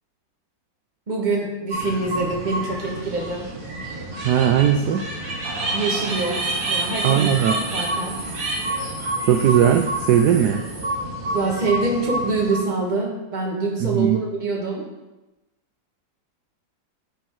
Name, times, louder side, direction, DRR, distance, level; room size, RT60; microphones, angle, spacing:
voice 1, 1.1-3.5 5.7-7.3 7.7-8.2 11.3-14.8, right 3 dB, 25° right, -1 dB, 1.4 m, -25 dB
sound 1, 1.7-12.6, right 1 dB, 50° right, 1.9 m, -28 dB
voice 2, 4.2-5.0 7.0-7.6 9.2-10.6 13.8-14.2, right 9 dB, 75° right, 6 dB, 1.0 m, -18 dB
sound 2, 5.4-11.9, right 4 dB, 90° right, 1.7 m, -41 dB
7.3 x 5.5 x 4.6 m, 1.0 s
omnidirectional pair, 1.9 m